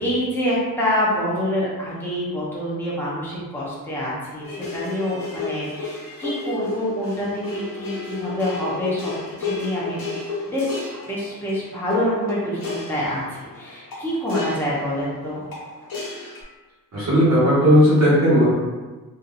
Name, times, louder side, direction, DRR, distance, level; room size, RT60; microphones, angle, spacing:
voice 1, 0.0-9.1 9.4-10.0 10.5-15.4, equal, 5° left, -7 dB, 0.9 m, -26 dB
sound 1, 4.4-16.4, left 4 dB, 75° left, 1.0 m, -32 dB
voice 2, 16.9-18.4, equal, 45° right, -9 dB, 1.4 m, -15 dB
2.7 x 2.6 x 2.6 m, 1.3 s
cardioid pair, 65°, 36 cm